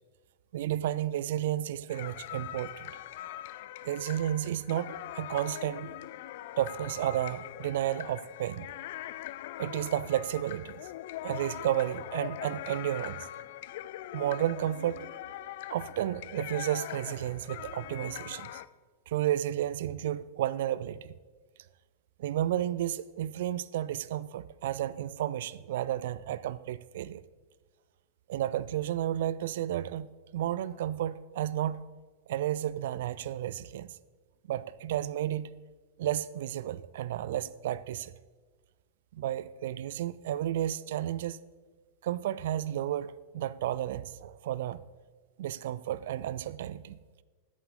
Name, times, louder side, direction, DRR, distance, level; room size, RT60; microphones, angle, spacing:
voice 1, 0.5-2.9 3.8-5.9 6.6-8.7 9.6-10.8 11.2-13.3 14.1-15.1 15.7-18.6 19.1-21.1 22.2-27.2 28.3-30.1 30.3-31.8 32.3-34.0 34.5-35.5 36.0-38.1 39.1-41.4 42.0-44.8 45.4-47.0, right 12 dB, 55° right, 0.4 m, -32 dB
sound 1, 1.9-18.7, left 14 dB, 55° left, 0.3 m, -42 dB
13.5 x 8.6 x 4.0 m
figure-of-eight pair, 90°, 0 cm